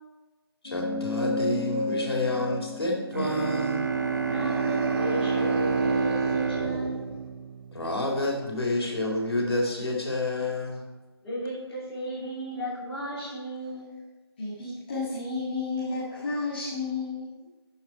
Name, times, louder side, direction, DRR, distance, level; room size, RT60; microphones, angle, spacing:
voice 1, 0.6-3.8 7.7-10.8, left 2 dB, 70° left, -1 dB, 4.0 m, -29 dB
sound 1, 0.6-5.4, left 2 dB, 50° left, 1.8 m, -34 dB
Bowed string instrument, 3.1-8.1, right 5 dB, 45° right, 0.9 m, -28 dB
sound 2, 3.7-7.6, right 1 dB, 85° right, 3.3 m, -37 dB
voice 2, 4.3-7.0 11.2-13.9, equal, 5° left, -15 dB, 3.3 m, -35 dB
voice 3, 14.4-17.5, left 3 dB, 20° left, -10 dB, 1.9 m, -32 dB
13.5 x 6.5 x 4.6 m, 1.2 s
figure-of-eight pair, 175°, 14 cm